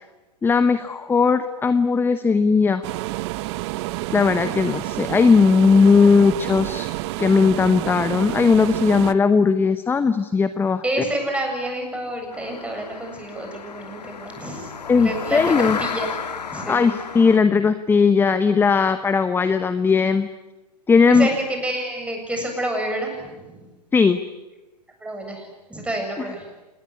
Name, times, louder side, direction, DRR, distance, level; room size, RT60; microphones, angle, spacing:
voice 1, 0.4-2.8 4.1-6.9 7.2-10.8 14.9-15.8 16.7-20.3 20.9-21.3 23.9-24.2, left 5 dB, 10° left, 12 dB, 0.9 m, -18 dB
sound 1, 2.8-9.1, right 18 dB, 40° right, 1.0 m, -29 dB
voice 2, 10.8-16.1 16.5-17.0 21.1-23.6 25.0-26.5, right 1 dB, 5° right, 2 dB, 7.5 m, -29 dB
sound 2, 12.3-17.4, left 6 dB, 80° left, 1.6 m, -32 dB
27.0 x 20.0 x 9.8 m, 1.1 s
hypercardioid pair, 115°, 21 cm